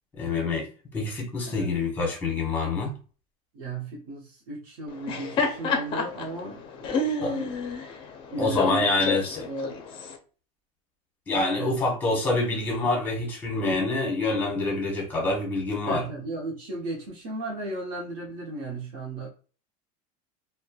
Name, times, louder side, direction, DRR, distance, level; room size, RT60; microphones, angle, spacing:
voice 1, 0.1-2.9 7.2-7.3 8.4-9.4 11.3-16.0, left 3 dB, 10° left, 0.9 m, -26 dB
voice 2, 3.5-7.5 8.3-9.8 11.5-11.8 15.8-19.3, right 2 dB, 70° right, 0.8 m, -35 dB
Laughter, 4.9-10.2, left 3 dB, 25° left, 0.4 m, -30 dB
3.0 x 2.1 x 2.2 m
supercardioid pair, 160°, 19 cm